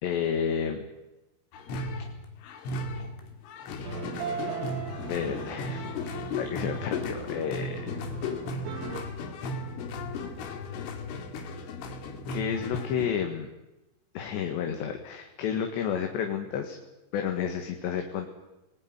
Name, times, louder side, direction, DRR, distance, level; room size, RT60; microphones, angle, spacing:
voice 1, 0.0-0.8 5.1-5.9 6.4-7.8 9.4-9.6 12.3-13.5 14.2-16.8 17.1-18.3, left 7 dB, 70° left, 4 dB, 3.8 m, -31 dB
sound 1, 1.5-13.1, left 3 dB, 85° left, 4.8 m, -35 dB
sound 2, 3.8-9.0, right 7 dB, 70° right, 4.7 m, -39 dB
27.0 x 20.0 x 9.7 m, 1.0 s
omnidirectional pair, 5.5 m